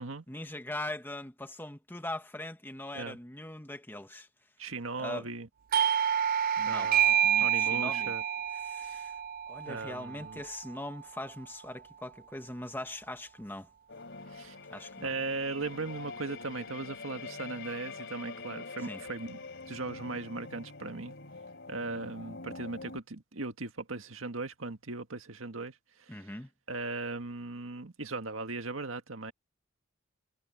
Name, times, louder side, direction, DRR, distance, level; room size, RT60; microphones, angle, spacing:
voice 1, 0.3-4.3 5.0-5.3 6.6-6.9 7.2-8.1 8.5-9.1 9.5-13.7 14.7-15.1 18.8-19.0 26.1-26.5, left 1 dB, 10° left, 1.3 m, -41 dB
voice 2, 4.6-5.5 6.6-8.2 8.8-9.0 9.6-10.4 14.3-14.5 15.0-19.4 19.7-21.1 21.7-25.8 26.1-26.3 26.7-29.3, right 3 dB, 75° right, 1.8 m, -38 dB
Doorbell, 5.7-11.0, right 9 dB, 45° right, 0.3 m, -28 dB
sound 1, 13.9-23.0, left 4 dB, 60° left, 4.1 m, -45 dB
head